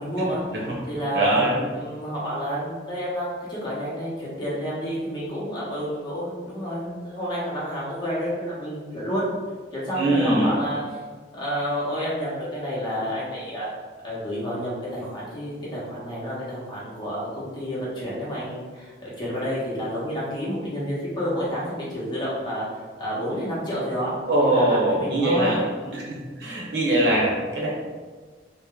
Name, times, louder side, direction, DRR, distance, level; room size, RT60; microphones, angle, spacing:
voice 1, 0.0-0.4 0.9-1.4 1.7-9.3 9.7-11.0 11.3-13.7 14.0-22.7 23.0-26.1, equal, 25° left, -8 dB, 1.2 m, -29 dB
voice 2, 1.1-1.6 10.0-10.5 24.3-25.6 25.9-27.7, right 1 dB, 85° right, -5 dB, 1.2 m, -22 dB
3.2 x 2.6 x 3.8 m, 1.4 s
head